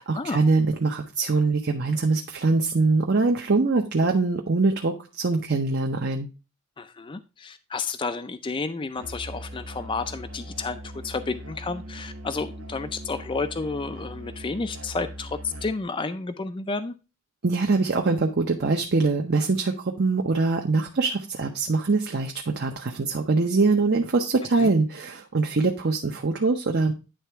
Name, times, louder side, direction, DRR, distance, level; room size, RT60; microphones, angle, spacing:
voice 1, 0.0-6.3 17.4-26.9, right 3 dB, 50° right, 2 dB, 0.7 m, -23 dB
voice 2, 6.8-16.9 24.6-24.7, left 4 dB, 25° left, 10 dB, 0.4 m, -31 dB
Musical instrument, 9.0-15.9, equal, 75° right, 1.2 m, -40 dB
10.0 x 3.4 x 4.5 m, 0.29 s
head